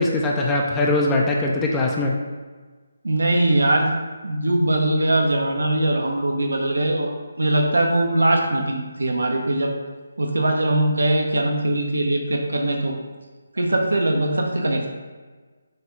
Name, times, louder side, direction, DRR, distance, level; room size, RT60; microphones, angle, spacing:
voice 1, 0.0-2.1, left 2 dB, 15° left, -1 dB, 0.4 m, -21 dB
voice 2, 3.0-3.9 4.2-7.1 7.4-9.7 10.2-12.9 13.6-14.9, right 1 dB, 85° right, 1 dB, 0.6 m, -21 dB
6.4 x 2.3 x 3.1 m, 1.4 s
figure-of-eight pair, 155°, 0 cm